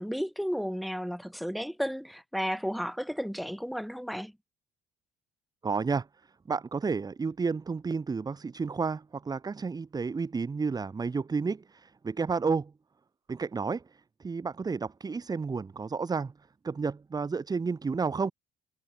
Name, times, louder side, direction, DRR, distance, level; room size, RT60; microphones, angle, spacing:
voice 1, 0.0-4.3, equal, ahead, 4.9 m, -33 dB
voice 2, 5.6-6.1 6.5-12.7 13.3-13.8 14.2-16.3 16.6-18.3, right 4 dB, 25° right, 1.3 m, -31 dB
cardioid pair, 110°, 17 cm